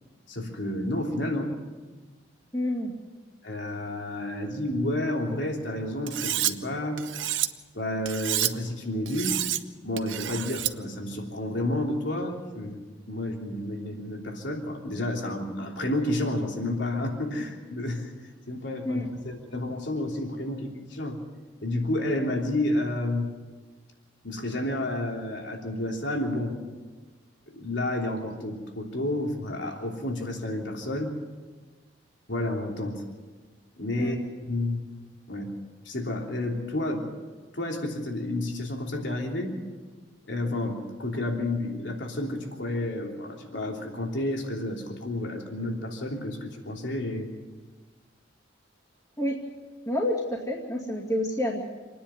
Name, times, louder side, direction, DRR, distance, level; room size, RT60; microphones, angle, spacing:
voice 1, 0.3-1.5 3.4-7.0 7.7-9.4 9.8-18.1 18.5-21.2 21.6-23.3 24.2-26.5 27.5-31.1 32.3-33.0 33.8-34.8 35.3-35.5 35.8-37.1 37.5-39.6 40.3-47.3, left 1 dB, 75° left, 1 dB, 3.2 m, -30 dB
voice 2, 2.5-2.9 18.8-19.1 34.0-34.1 49.2-49.4 49.9-51.6, left 1 dB, 20° left, -4 dB, 2.3 m, -28 dB
Cutlery silverware, 6.1-6.5 7.0-7.5 8.1-8.5 9.1-9.6 10.0-10.7, right 12 dB, 80° right, 0.8 m, -28 dB
27.0 x 10.0 x 9.4 m, 1.3 s
head